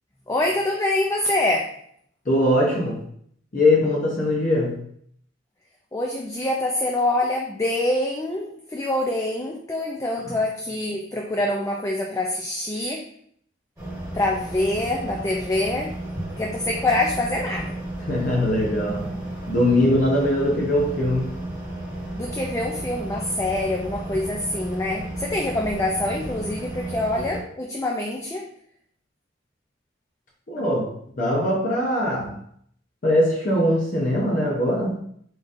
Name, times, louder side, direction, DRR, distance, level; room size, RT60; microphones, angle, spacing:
voice 1, 0.3-1.7 5.9-13.0 14.1-15.9 16.4-17.7 22.1-28.4, left 1 dB, 15° left, -1 dB, 0.4 m, -25 dB
voice 2, 2.3-3.0 3.5-4.8 10.2-10.3 18.0-19.1 19.5-21.3 30.5-32.4 33.0-35.0, left 1 dB, 45° left, -4 dB, 0.7 m, -21 dB
sound 1, 13.8-27.4, right 1 dB, 15° right, 1.5 m, -33 dB
3.8 x 3.8 x 2.5 m, 0.66 s
head